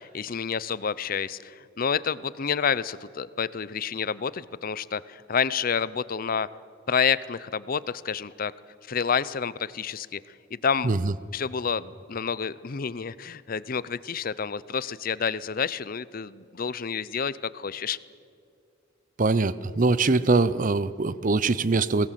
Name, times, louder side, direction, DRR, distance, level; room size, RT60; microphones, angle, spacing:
voice 1, 0.0-6.5 6.9-8.5 8.9-10.2 10.5-10.9 11.3-18.0, left 6 dB, 45° left, 19 dB, 0.5 m, -29 dB
voice 2, 19.2-22.1, right 3 dB, 40° right, 17 dB, 0.6 m, -23 dB
22.5 x 18.0 x 7.6 m, 2.4 s
head